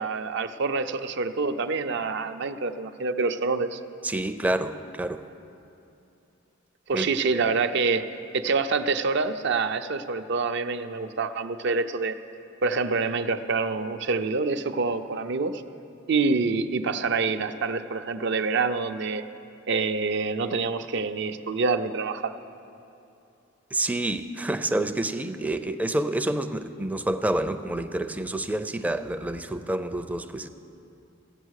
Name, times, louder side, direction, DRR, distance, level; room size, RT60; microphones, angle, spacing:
voice 1, 0.0-3.8 6.9-8.1 8.3-12.2 12.6-15.6 16.1-19.2 19.7-22.3, right 4 dB, 60° right, 9 dB, 0.5 m, -26 dB
voice 2, 4.0-5.2 6.9-7.1 23.7-30.5, right 1 dB, 10° right, 9 dB, 0.4 m, -28 dB
15.0 x 8.8 x 6.4 m, 2.7 s
head